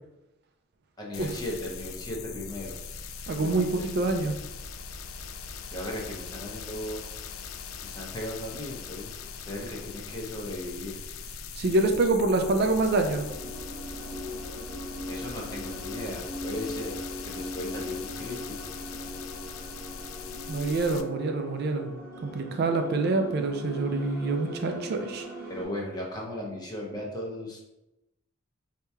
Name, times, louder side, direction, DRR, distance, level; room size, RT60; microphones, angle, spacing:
voice 1, 1.0-2.8 3.4-3.9 5.7-7.0 7.8-11.0 15.1-17.0 17.3-18.7 25.5-27.6, left 1 dB, 20° left, -2 dB, 0.7 m, -37 dB
sound 1, 1.1-21.0, left 5 dB, 75° left, 0.3 m, -41 dB
voice 2, 3.3-4.3 11.6-13.3 20.5-21.9 22.2-25.3, right 2 dB, 50° right, 5 dB, 0.3 m, -26 dB
sound 2, 12.2-25.7, equal, 10° right, 0.9 m, -40 dB
4.4 x 2.8 x 2.3 m, 0.94 s
head